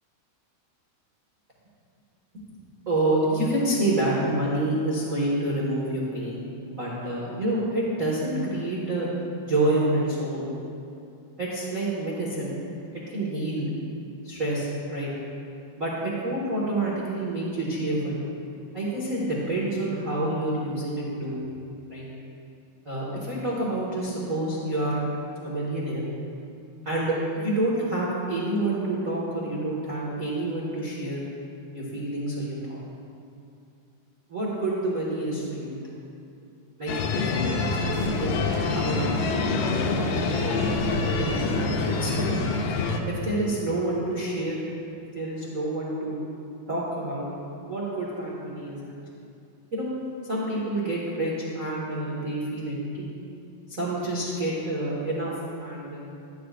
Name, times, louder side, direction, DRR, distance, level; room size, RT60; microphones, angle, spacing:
voice 1, 2.8-6.4 6.7-9.1 9.4-10.5 11.4-12.5 12.9-13.7 14.2-15.1 15.8-18.2 18.7-21.4 21.9-22.0 22.8-25.0 25.4-26.0 26.8-31.2 31.7-32.8 34.3-35.9 36.8-38.4 38.7-39.6 39.9-42.3 43.0-44.6 45.1-46.1 46.7-47.2 47.6-48.9 49.7-49.9 50.3-53.1 53.7-55.3 55.6-56.1, right 1 dB, 65° right, -7 dB, 0.8 m, -28 dB
sound 1, 36.9-43.0, left 4 dB, 80° left, 2.2 m, -26 dB
13.0 x 12.0 x 2.5 m, 2.5 s
omnidirectional pair, 4.5 m